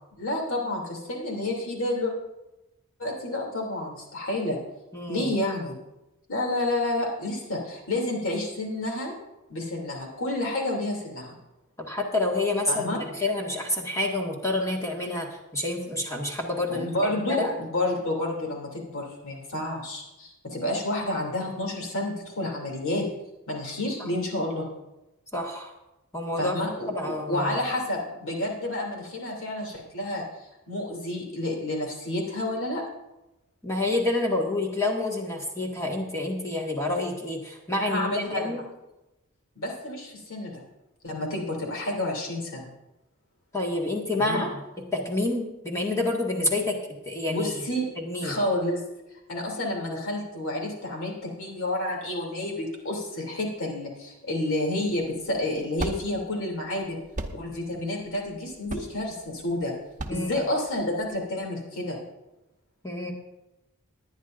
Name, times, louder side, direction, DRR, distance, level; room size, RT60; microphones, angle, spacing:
voice 1, 0.2-2.1 3.0-4.6 5.1-5.8 6.3-9.1 9.5-11.3 12.7-13.0 16.7-23.0 23.5-24.7 26.4-30.2 30.7-32.8 37.8-38.6 39.6-40.6 41.0-42.7 44.2-44.5 47.3-47.9 48.2-48.8 49.3-57.0 57.3-59.7 60.1-62.0, left 1 dB, 65° left, 0 dB, 2.9 m, -30 dB
voice 2, 4.9-5.3 11.8-15.3 15.5-16.9 17.3-17.5 25.3-25.7 26.1-26.6 26.9-27.5 33.6-38.6 43.5-44.6 44.9-46.8 47.0-47.5 48.0-48.4 60.1-60.5 62.8-63.1, left 2 dB, 15° left, -2 dB, 1.8 m, -28 dB
sound 1, 55.0-61.2, right 2 dB, 35° right, 1.0 m, -38 dB
20.0 x 10.5 x 2.6 m, 0.97 s
head